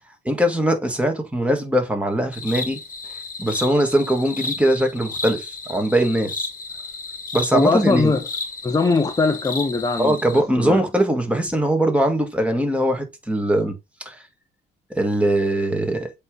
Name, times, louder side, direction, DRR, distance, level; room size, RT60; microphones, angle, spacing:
voice 1, 0.3-2.8 3.4-6.5 7.3-8.1 10.0-13.7 14.1-14.2 14.9-16.1, right 1 dB, 5° right, 1.7 m, -21 dB
sound 1, 2.3-10.4, left 3 dB, 45° left, 1.4 m, -33 dB
voice 2, 7.5-8.2 8.6-10.2 10.6-10.8, left 3 dB, 20° left, 0.7 m, -20 dB
7.8 x 3.2 x 3.8 m
cardioid pair, 90°, 20 cm